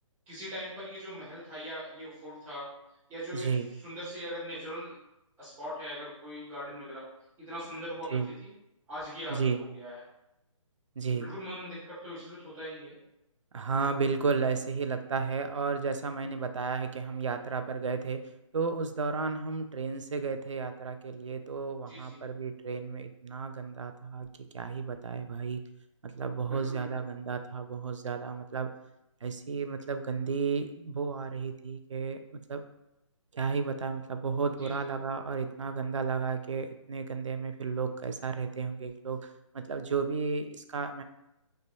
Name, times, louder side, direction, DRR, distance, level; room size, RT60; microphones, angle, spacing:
voice 1, 0.3-2.7 3.1-4.9 5.4-7.0 7.4-8.5 8.9-9.4 9.7-10.0 11.1-13.0 21.9-22.2 26.5-27.1 34.6-34.8, equal, 10° right, -14 dB, 0.9 m, -41 dB
voice 2, 3.3-3.7 8.1-8.3 9.3-9.6 11.0-11.3 13.5-18.2 18.5-24.3 24.5-25.6 26.1-28.7 29.2-32.2 32.5-32.6 33.3-39.3 39.5-41.0, right 5 dB, 65° right, 8 dB, 0.4 m, -33 dB
3.7 x 3.3 x 2.2 m, 0.87 s
figure-of-eight pair, 140°, 17 cm